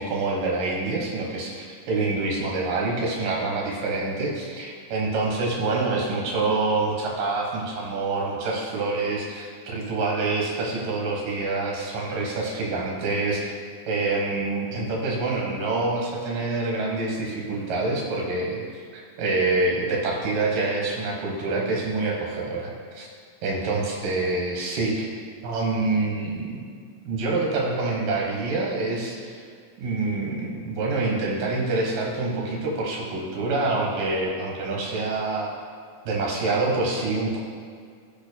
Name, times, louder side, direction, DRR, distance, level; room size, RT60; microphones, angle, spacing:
voice 1, 0.0-13.5 13.9-23.1 23.4-25.1 25.4-26.6 27.0-29.4 29.8-35.6 36.1-37.4, right 3 dB, 85° right, -2 dB, 2.9 m, -26 dB
16.5 x 5.6 x 2.2 m, 2.1 s
omnidirectional pair, 3.7 m